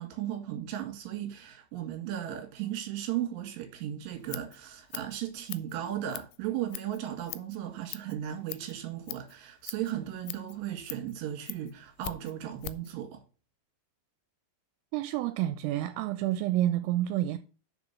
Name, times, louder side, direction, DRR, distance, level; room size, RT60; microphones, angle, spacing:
voice 1, 0.0-13.2, right 11 dB, 65° right, 3.5 m, -36 dB
Scissors, 4.0-13.0, left 15 dB, 85° left, 3.2 m, -44 dB
voice 2, 14.9-17.4, right 13 dB, 85° right, 3.2 m, -29 dB
7.0 x 6.0 x 7.2 m
omnidirectional pair, 5.9 m